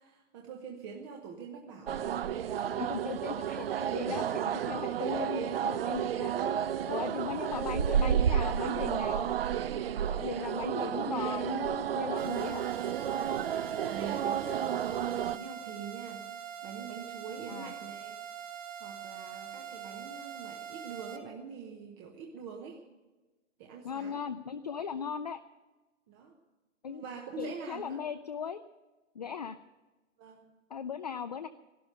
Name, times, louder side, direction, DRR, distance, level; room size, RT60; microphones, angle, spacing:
voice 1, 0.0-2.0 2.6-2.8 6.3-6.7 10.3-11.2 13.2-18.2 18.8-22.8 23.6-24.2 26.1-26.4 26.9-28.0 30.2-30.6, right 5 dB, 20° right, 1 dB, 0.9 m, -44 dB
sound 1, 1.9-15.4, right 9 dB, 50° right, 0.6 m, -31 dB
voice 2, 2.8-6.3 6.9-9.3 10.1-12.7 17.5-17.7 23.8-25.4 26.8-27.0 27.4-28.6 29.2-29.6 30.7-31.5, left 7 dB, 35° left, 9 dB, 0.4 m, -38 dB
sound 2, 12.2-21.2, right 8 dB, 85° right, 2.3 m, -43 dB
15.5 x 12.0 x 6.6 m, 1.2 s
hypercardioid pair, 160°, 38 cm